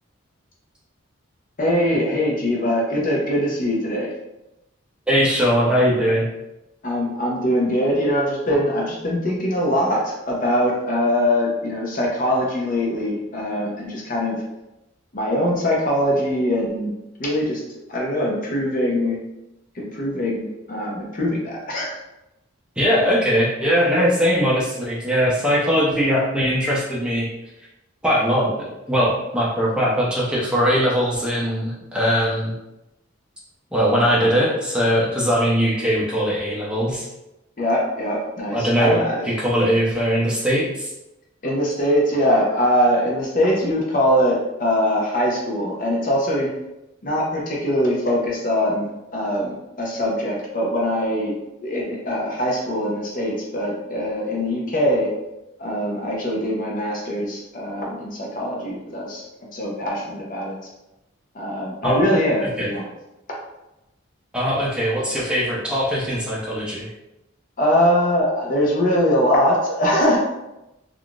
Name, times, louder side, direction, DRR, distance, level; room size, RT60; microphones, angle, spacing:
voice 1, 1.6-4.1 6.8-14.4 15.1-16.9 17.2-17.6 17.9-19.2 19.7-22.0 37.6-39.2 41.4-46.5 47.0-51.4 51.6-55.1 55.6-59.3 59.5-60.6 61.3-62.8 67.6-70.2, equal, 40° left, -2 dB, 0.6 m, -22 dB
voice 2, 5.1-6.3 22.8-27.3 28.0-32.5 33.7-37.1 38.5-39.0 39.2-40.9 61.8-62.2 62.6-62.7 64.3-66.9, equal, 5° right, -6 dB, 0.5 m, -20 dB
3.4 x 2.4 x 2.3 m, 0.92 s
head